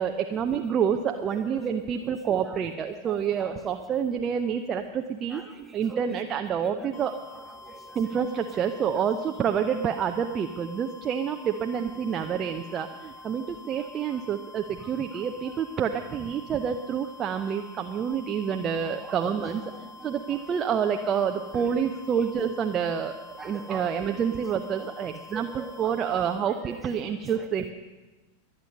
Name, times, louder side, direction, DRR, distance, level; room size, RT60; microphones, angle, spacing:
voice 1, 0.0-5.4 5.7-7.2 7.9-19.6 20.0-23.2 23.4-27.7, right 7 dB, 25° right, 5 dB, 0.7 m, -28 dB
voice 2, 3.1-3.6 5.3-6.0 6.5-6.9 7.3-7.8 19.0-19.5 20.0-20.1 22.1-22.2 23.4-24.0 24.8-24.9 25.3-25.9 26.5-26.8 27.4-27.5, right 4 dB, 10° right, 1 dB, 1.8 m, -43 dB
sound 1, 6.9-26.4, left 3 dB, 40° left, 3.0 m, -47 dB
23.5 x 9.0 x 5.4 m, 1.2 s
figure-of-eight pair, 90°, 0 cm